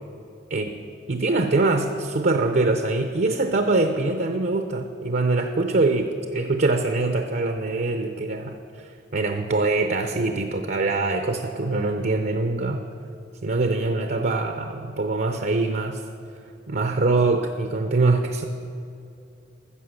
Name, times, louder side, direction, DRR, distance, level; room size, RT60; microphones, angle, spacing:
voice 1, 1.1-12.8 13.4-16.0 16.7-18.4, right 3 dB, 55° right, 6 dB, 0.6 m, -23 dB
14.0 x 7.5 x 6.5 m, 2.5 s
head